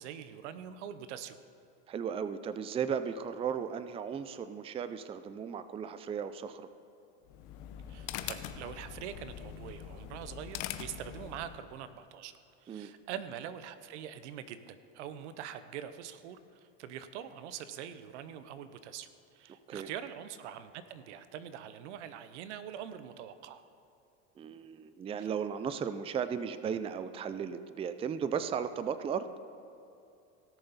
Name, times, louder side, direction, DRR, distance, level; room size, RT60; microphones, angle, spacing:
voice 1, 0.0-1.4 7.9-12.3 12.6-19.1 19.3-23.6 25.2-25.3, right 9 dB, 85° right, 12 dB, 0.8 m, -44 dB
voice 2, 1.9-6.7 12.7-12.9 19.7-19.9 24.4-29.3, right 7 dB, 15° right, 12 dB, 0.4 m, -35 dB
sound 1, 7.2-11.7, left 10 dB, 65° left, 0.8 m, -43 dB
17.0 x 6.8 x 4.1 m, 2.7 s
supercardioid pair, 110°, 34 cm